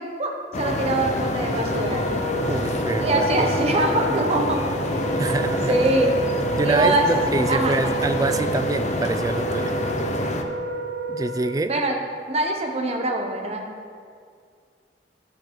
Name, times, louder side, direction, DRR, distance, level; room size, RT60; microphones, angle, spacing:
voice 1, 0.0-2.1 3.0-4.7 5.2-5.4 5.7-6.1 6.6-7.1 7.5-8.0 11.7-12.0 12.3-13.7, right 2 dB, 35° right, 3 dB, 1.0 m, -23 dB
sound 1, 0.5-10.4, left 1 dB, 40° left, 0.6 m, -27 dB
sound 2, 0.9-9.2, right 1 dB, 20° left, 1.1 m, -45 dB
Wind instrument woodwind instrument, 1.5-11.6, right 3 dB, 80° right, 1.8 m, -30 dB
voice 2, 2.5-3.5 5.2-5.8 6.6-9.8 11.1-11.7, right 2 dB, 20° right, 10 dB, 0.3 m, -26 dB
12.0 x 5.2 x 4.4 m, 2.2 s
head